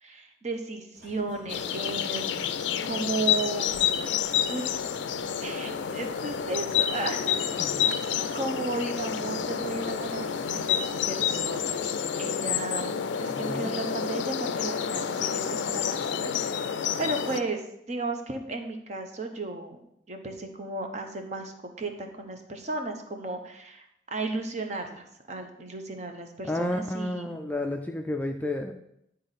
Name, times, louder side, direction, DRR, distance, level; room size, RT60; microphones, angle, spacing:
voice 1, 0.0-2.6 2.9-3.9 4.5-4.8 5.4-7.6 7.9-8.0 8.3-11.8 12.2-12.9 13.2-17.6 17.9-19.8 20.1-23.8 24.1-27.3, right 2 dB, 40° right, 4 dB, 0.8 m, -34 dB
sound 1, 0.9-11.8, equal, 80° right, 1.6 m, -47 dB
sound 2, 1.5-17.4, left 8 dB, 80° left, 0.4 m, -29 dB
voice 2, 13.3-13.7 26.4-28.7, left 1 dB, 10° left, 3 dB, 0.3 m, -31 dB
9.7 x 3.9 x 4.1 m, 0.77 s
head